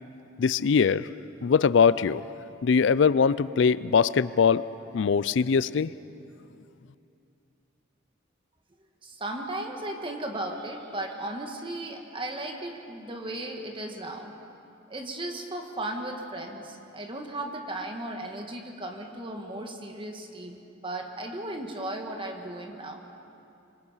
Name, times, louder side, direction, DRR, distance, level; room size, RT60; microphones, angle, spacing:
voice 1, 0.4-1.1 1.4-2.2 2.6-4.6 4.9-5.9, left 6 dB, 65° left, 18 dB, 0.4 m, -22 dB
voice 2, 9.0-14.3 14.9-23.0, right 1 dB, 25° right, 3 dB, 1.6 m, -36 dB
26.0 x 25.0 x 5.7 m, 2.7 s
head